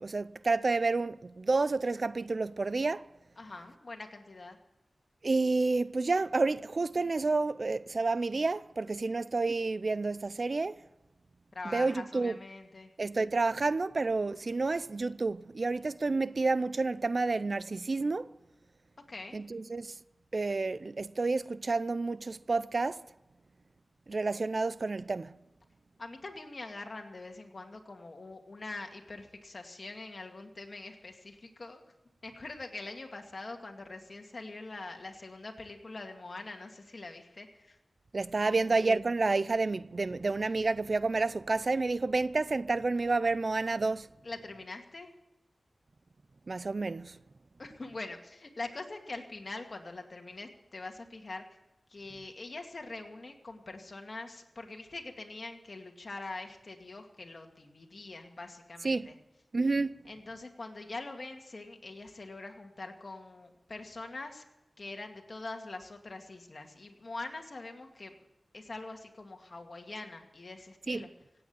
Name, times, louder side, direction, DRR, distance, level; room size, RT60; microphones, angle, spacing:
voice 1, 0.0-3.0 5.2-10.8 11.7-12.4 13.0-18.3 19.3-20.0 20.3-23.0 24.1-25.4 38.1-44.1 46.5-47.2 58.8-59.1 59.5-59.9 70.9-71.0, right 3 dB, 55° right, 0.4 m, -30 dB
voice 2, 3.4-4.6 11.5-12.9 19.1-19.4 26.0-31.8 32.2-37.8 38.4-38.8 44.2-45.1 47.6-51.4 51.9-59.2 60.0-64.4 64.8-68.2 68.5-71.1, left 3 dB, 55° left, 2.3 m, -44 dB
17.0 x 8.8 x 8.8 m
wide cardioid pair, 65°, 0 cm